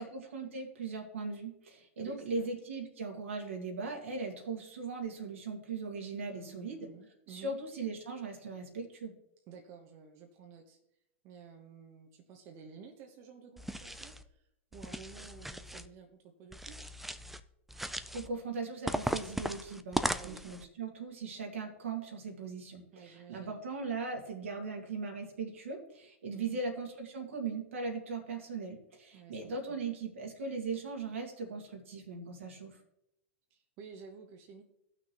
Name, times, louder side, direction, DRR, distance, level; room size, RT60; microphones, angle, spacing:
voice 1, 0.0-6.9 7.3-9.1 17.8-32.8, right 4 dB, 80° right, 2 dB, 2.0 m, -39 dB
voice 2, 2.0-2.5 6.2-7.6 9.5-10.8 11.2-16.9 20.1-20.5 22.9-23.6 26.3-26.6 29.1-29.8 33.5-34.6, right 6 dB, 45° right, 3 dB, 1.1 m, -52 dB
sound 1, 13.6-14.2 14.7-15.9 16.5-17.4 17.7-18.3 18.9-20.6, right 1 dB, 5° right, 0.4 m, -37 dB
16.0 x 6.1 x 3.0 m, 0.81 s
hypercardioid pair, 105°, 7 cm